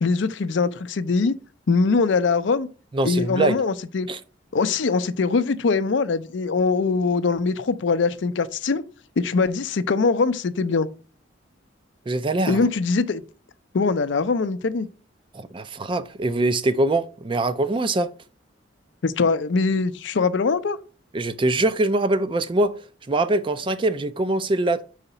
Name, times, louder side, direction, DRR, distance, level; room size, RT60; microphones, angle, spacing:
voice 1, 0.0-1.3 1.7-2.7 3.0-4.1 4.5-8.8 9.2-10.9 12.5-13.2 13.7-14.9 19.0-20.8, left 4 dB, 70° left, 0.5 m, -22 dB
voice 2, 2.9-3.5 4.1-4.2 12.1-12.6 15.3-18.1 21.1-22.7 23.1-24.8, right 2 dB, 25° right, 0.4 m, -23 dB
4.9 x 3.9 x 5.5 m
head